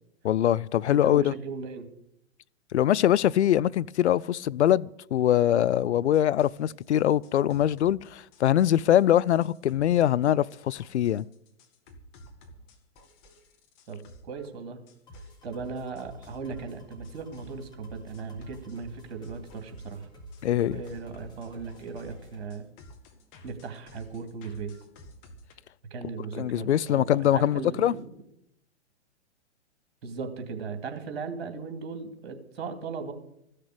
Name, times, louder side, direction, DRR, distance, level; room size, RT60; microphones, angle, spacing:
voice 1, 0.2-1.3 2.7-11.3 20.4-20.8 26.3-27.9, left 11 dB, 75° left, 0.5 m, -23 dB
voice 2, 0.9-1.9 13.9-14.0 14.2-14.8 15.4-20.1 20.7-22.7 23.4-24.8 25.9-28.0 30.0-33.1, right 5 dB, 60° right, 2.5 m, -37 dB
sound 1, 6.0-15.5 16.0-17.6 18.1-19.9 20.3-25.5, left 1 dB, 40° left, 2.0 m, -53 dB
sound 2, 15.1-22.4, right 1 dB, 10° left, 3.4 m, -48 dB
14.5 x 6.6 x 9.7 m
hypercardioid pair, 115°, 34 cm